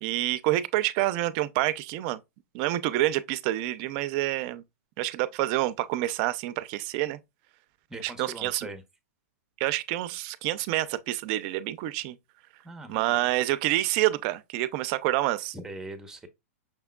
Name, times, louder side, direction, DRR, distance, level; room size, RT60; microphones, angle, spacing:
voice 1, 0.0-2.2 2.5-4.6 5.0-7.2 8.0-8.7 9.6-12.2 12.9-15.5, right 15 dB, 40° right, 0.5 m, -27 dB
voice 2, 7.9-8.8 12.6-13.3 15.5-16.3, right 2 dB, 5° right, 0.8 m, -41 dB
5.9 x 3.5 x 2.2 m
hypercardioid pair, 145°, 8 cm